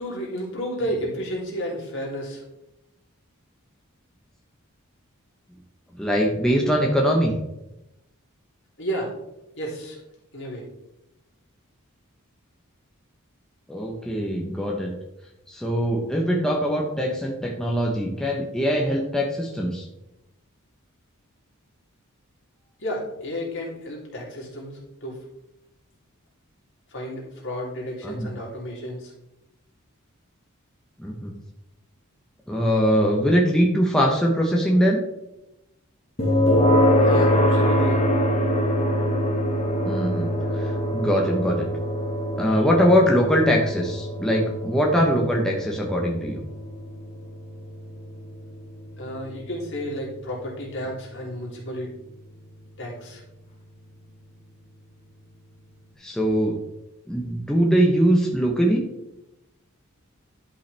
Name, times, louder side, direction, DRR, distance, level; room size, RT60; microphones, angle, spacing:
voice 1, 0.0-2.4 8.8-9.1 9.6-10.0 10.3-10.6 22.8-25.2 26.9-29.1 36.9-38.0 49.0-51.9 52.8-53.2, equal, 60° left, -3 dB, 2.8 m, -32 dB
voice 2, 6.0-7.3 13.7-14.9 15.5-19.8 28.0-28.3 31.0-31.3 32.5-35.0 39.8-41.7 42.4-46.4 56.0-56.5 57.1-58.8, equal, 5° left, -2 dB, 0.9 m, -22 dB
sound 1, 36.2-51.1, equal, 30° left, 1.2 m, -24 dB
11.5 x 5.5 x 3.4 m, 0.91 s
head